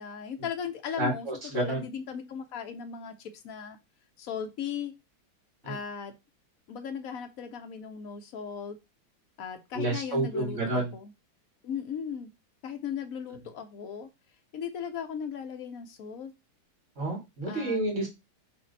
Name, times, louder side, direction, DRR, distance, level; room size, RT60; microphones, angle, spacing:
voice 1, 0.0-3.8 4.2-4.9 5.6-6.1 6.7-8.8 9.4-11.1 11.6-12.3 12.6-14.1 14.5-16.3 17.5-17.8, left 7 dB, 65° left, 0.9 m, -37 dB
voice 2, 0.9-1.8 5.6-5.8 9.7-10.9 17.0-18.1, right 2 dB, 40° right, 2.0 m, -30 dB
4.3 x 3.1 x 4.0 m
omnidirectional pair, 2.2 m